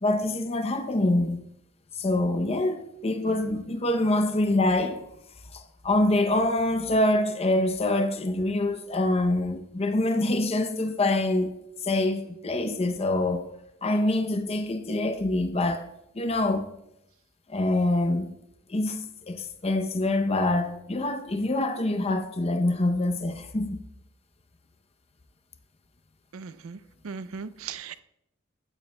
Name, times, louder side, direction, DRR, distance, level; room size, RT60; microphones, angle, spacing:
voice 1, 0.0-1.4 2.0-5.0 5.5-11.6 11.8-13.4 13.8-15.9 16.1-16.7 17.5-18.3 18.7-19.0 19.3-23.8, left 2 dB, 30° left, 0.6 m, -25 dB
voice 2, 26.3-26.8 27.0-28.0, right 6 dB, 85° right, 0.5 m, -38 dB
15.0 x 9.8 x 2.2 m
head